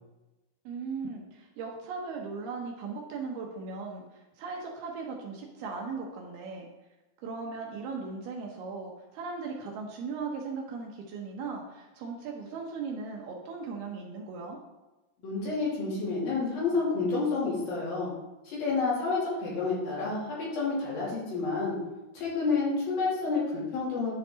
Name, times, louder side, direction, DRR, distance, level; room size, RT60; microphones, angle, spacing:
voice 1, 0.7-6.7 7.2-14.6, right 4 dB, 75° right, 0 dB, 2.4 m, -38 dB
voice 2, 15.2-18.1 18.4-21.8 22.1-24.1, left 4 dB, 50° left, -6 dB, 4.4 m, -29 dB
10.5 x 5.8 x 3.9 m, 1.1 s
omnidirectional pair, 5.5 m